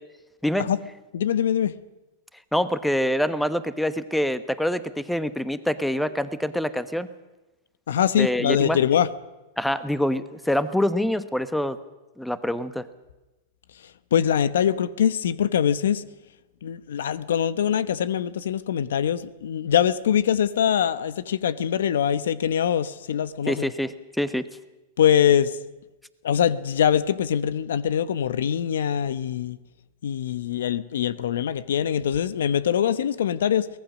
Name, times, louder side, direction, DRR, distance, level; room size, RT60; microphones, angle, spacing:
voice 1, 1.1-1.7 7.9-9.1 14.1-16.0 16.6-23.7 25.0-25.6 26.2-29.6 30.0-33.7, left 9 dB, 80° left, 0.9 m, -23 dB
voice 2, 2.5-7.1 8.2-8.8 9.6-11.8 12.2-12.9 23.5-24.5, equal, 5° left, 1.1 m, -25 dB
23.5 x 18.0 x 6.3 m
hypercardioid pair, 120°, 0 cm